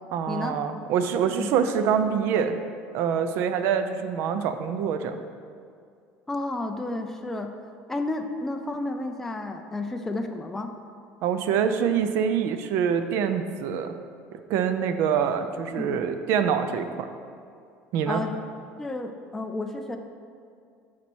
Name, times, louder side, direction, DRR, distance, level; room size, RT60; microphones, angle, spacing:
voice 1, 0.1-2.6 2.9-5.2 11.2-13.9 14.5-17.1 17.9-18.2, right 7 dB, 55° right, 9 dB, 0.5 m, -25 dB
voice 2, 6.3-7.5 7.9-10.7 15.8-16.0 18.1-18.3 18.8-20.0, left 2 dB, 5° left, 4 dB, 0.3 m, -31 dB
7.4 x 4.2 x 6.1 m, 2.3 s
cardioid pair, 170°, 5 cm